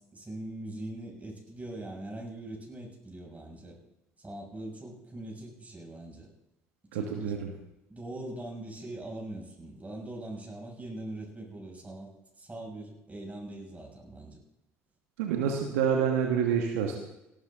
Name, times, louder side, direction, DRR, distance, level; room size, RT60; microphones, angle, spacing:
voice 1, 0.0-3.8 4.2-6.3 6.9-7.4 7.9-12.1 12.4-14.4, right 1 dB, 20° right, -1 dB, 6.5 m, -42 dB
voice 2, 6.9-7.5 15.2-17.0, right 7 dB, 80° right, 2 dB, 1.6 m, -27 dB
18.0 x 12.5 x 3.8 m, 0.91 s
hypercardioid pair, 60°, 7 cm